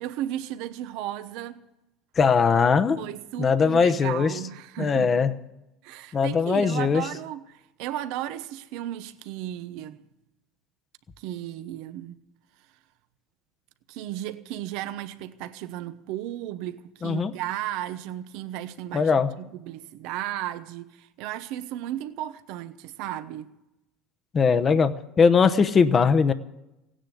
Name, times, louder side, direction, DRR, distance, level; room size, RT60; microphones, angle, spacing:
voice 1, 0.0-1.6 3.0-5.3 5.8-10.0 11.2-12.2 13.9-19.1 19.4-23.5, right 12 dB, 65° right, 0.9 m, -34 dB
voice 2, 2.2-3.0 3.4-4.4 4.8-5.3 6.1-7.1 17.0-17.3 18.9-19.3 24.3-26.3, left 5 dB, 25° left, 0.8 m, -20 dB
16.5 x 10.0 x 8.4 m
supercardioid pair, 130°, 0 cm